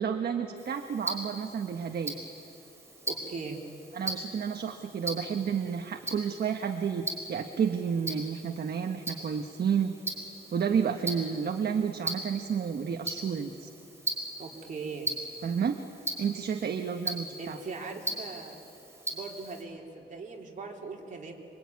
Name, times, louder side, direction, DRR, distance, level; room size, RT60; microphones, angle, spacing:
voice 1, 0.0-2.2 3.9-9.9 10.5-13.7 15.4-15.8 16.2-17.6, right 7 dB, 60° right, 5 dB, 1.2 m, -31 dB
Tick-tock, 0.6-19.6, right 1 dB, 15° right, 4.6 m, -40 dB
voice 2, 3.1-3.6 14.4-15.1 17.4-18.6 19.1-21.3, right 4 dB, 45° right, 0 dB, 3.5 m, -40 dB
26.0 x 24.5 x 9.5 m, 2.8 s
wide cardioid pair, 170°, 19 cm